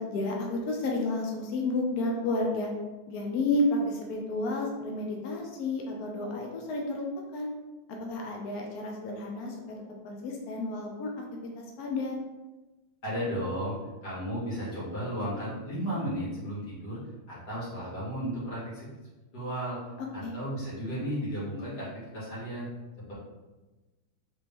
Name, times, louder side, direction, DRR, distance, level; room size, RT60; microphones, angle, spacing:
voice 1, 0.0-2.7 3.1-7.1 7.3-7.5 7.9-9.6 10.0-11.1 11.6-12.1 20.0-20.3, left 2 dB, 70° left, 0 dB, 0.9 m, -31 dB
voice 2, 13.0-13.8 14.0-17.0 17.3-18.9 19.3-19.8 20.1-21.9 22.1-22.7 23.1-23.2, equal, 55° left, -9 dB, 2.2 m, -34 dB
4.2 x 3.1 x 3.4 m, 1.2 s
omnidirectional pair, 2.2 m